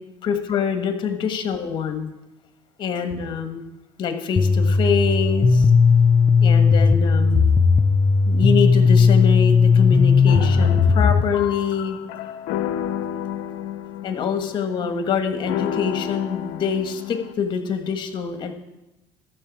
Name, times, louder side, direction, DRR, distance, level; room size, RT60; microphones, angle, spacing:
voice 1, 0.2-2.1 2.8-3.6 4.0-5.6 6.4-7.5 8.3-12.0 14.0-18.5, left 6 dB, 50° left, 7 dB, 1.5 m, -25 dB
sound 1, 4.4-11.2, left 5 dB, 30° left, 0.6 m, -16 dB
sound 2, 10.3-17.3, left 10 dB, 80° left, 0.6 m, -31 dB
13.0 x 6.8 x 4.8 m, 0.97 s
supercardioid pair, 85°, 10 cm